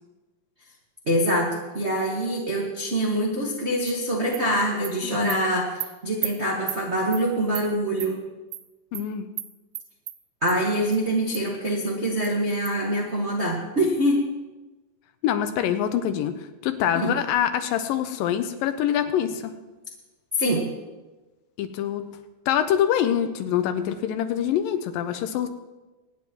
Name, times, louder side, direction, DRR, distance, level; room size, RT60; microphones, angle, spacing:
voice 1, 1.1-5.7 6.0-8.2 10.4-14.2 17.0-17.1 20.4-20.7, equal, 60° right, -4 dB, 0.7 m, -24 dB
Animal, 3.9-4.0 4.3-4.4 4.8-4.9 5.3-5.4 5.8-5.9 6.2-6.3 6.7-6.8 7.1-7.2 7.5-7.7 8.0-8.1 8.5-8.6 8.9-9.0 9.4-9.5 9.7-10.2 10.5-10.6 10.9-11.0 11.3-11.4 11.8-11.9 12.2-12.3 12.7-12.8, right 14 dB, 80° right, 2.1 m, -32 dB
voice 2, 5.0-5.4 8.9-9.3 15.2-19.5 21.6-22.0 22.5-25.5, left 10 dB, 80° left, 9 dB, 2.3 m, -25 dB
25.5 x 9.3 x 3.1 m, 1.1 s
omnidirectional pair, 4.2 m